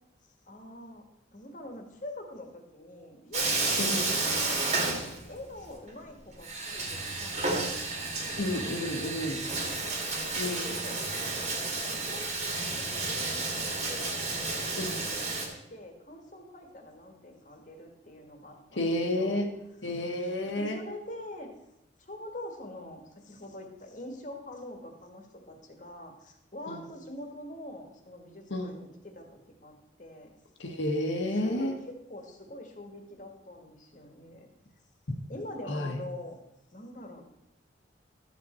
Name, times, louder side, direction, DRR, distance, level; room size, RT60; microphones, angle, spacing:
voice 1, 0.5-1.0 1.3-4.6 5.3-9.2 9.5-19.4 20.6-21.5 22.0-30.3 31.3-34.5 35.3-36.4 36.7-37.2, left 1 dB, 45° left, 4 dB, 1.5 m, -45 dB
Bathtub (filling or washing), 3.3-5.6 5.9-6.0 6.4-15.5, right 3 dB, 35° right, 1.9 m, -31 dB
voice 2, 3.8-4.1 8.4-9.4 10.3-10.8 14.8-15.0 18.7-19.5 19.8-20.8 26.7-26.8 28.5-28.7 30.6-31.7 35.7-36.0, left 1 dB, 85° left, 4 dB, 1.5 m, -31 dB
12.5 x 7.3 x 4.3 m, 0.86 s
head